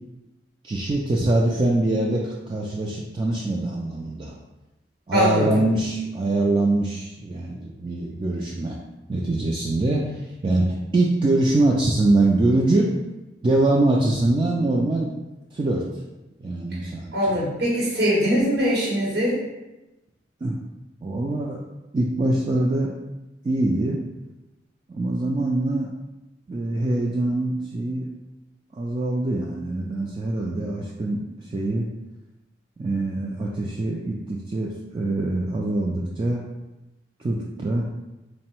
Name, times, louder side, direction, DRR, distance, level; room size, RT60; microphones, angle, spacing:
voice 1, 0.6-4.4 5.1-8.8 9.1-13.0 13.4-15.1 15.5-16.0 16.4-17.4 20.4-20.6 21.0-21.6 21.9-22.9 23.4-24.0 24.9-25.9 26.5-28.1 28.7-31.9 32.8-36.4 37.2-37.9, right 2 dB, 30° right, -2 dB, 0.3 m, -23 dB
voice 2, 5.1-5.6 17.1-19.4, equal, 60° right, -5 dB, 0.9 m, -22 dB
3.6 x 2.1 x 4.3 m, 1.0 s
head